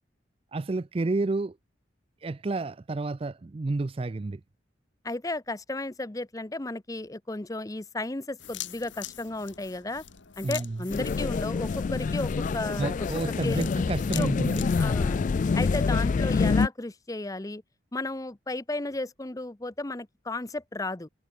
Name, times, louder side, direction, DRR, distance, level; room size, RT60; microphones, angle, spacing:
voice 1, 0.5-1.6 2.2-4.4 10.4-10.8 12.8-14.6, right 3 dB, 30° right, 0.4 m, -30 dB
voice 2, 5.0-10.0 10.4-13.1 13.4-13.6 14.1-14.3 14.8-15.2 15.5-17.6 17.9-21.1, left 2 dB, 20° left, 0.7 m, -34 dB
sound 1, 8.4-14.8, left 12 dB, 75° left, 1.5 m, -43 dB
sound 2, 10.9-16.7, left 4 dB, 40° left, 0.3 m, -26 dB
head